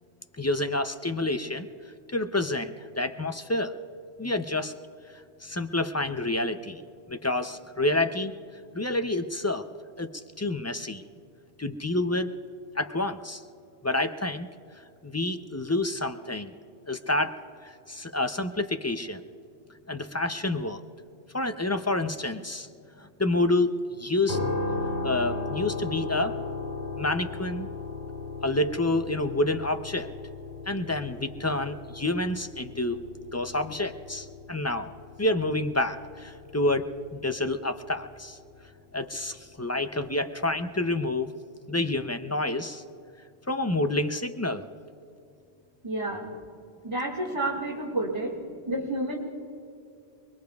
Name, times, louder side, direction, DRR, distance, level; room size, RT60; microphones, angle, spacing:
voice 1, 0.4-1.7 2.1-3.8 4.2-4.7 5.4-6.8 7.1-8.3 8.7-9.6 10.0-11.0 11.6-12.3 12.8-13.4 13.8-14.5 15.0-16.5 16.9-17.4 17.6-19.2 19.9-20.8 21.3-22.7 23.0-24.4 25.0-26.4 27.0-27.7 28.4-30.1 30.7-33.0 33.3-34.9 35.2-38.4 38.9-41.3 41.7-42.8 43.5-44.7, left 2 dB, 25° left, 8 dB, 0.4 m, -28 dB
sound 1, 24.3-38.3, left 3 dB, 45° left, 3.9 m, -36 dB
voice 2, 45.8-46.3 46.8-48.4 48.7-49.2, right 1 dB, 25° right, -4 dB, 1.9 m, -30 dB
29.0 x 21.5 x 2.3 m, 2.6 s
omnidirectional pair, 1.1 m